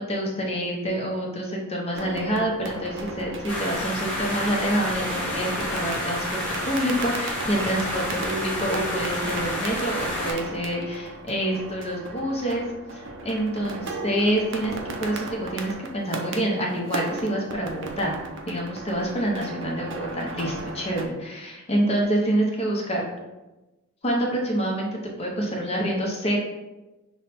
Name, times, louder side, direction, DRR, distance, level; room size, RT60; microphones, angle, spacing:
voice 1, 0.0-18.1 18.5-23.0 24.0-26.4, right 1 dB, 30° left, -1 dB, 0.7 m, -27 dB
sound 1, 1.9-21.0, right 3 dB, 60° right, 0.6 m, -36 dB
sound 2, 3.5-10.3, left 1 dB, 5° left, 1.2 m, -30 dB
5.8 x 2.2 x 4.1 m, 1.1 s
head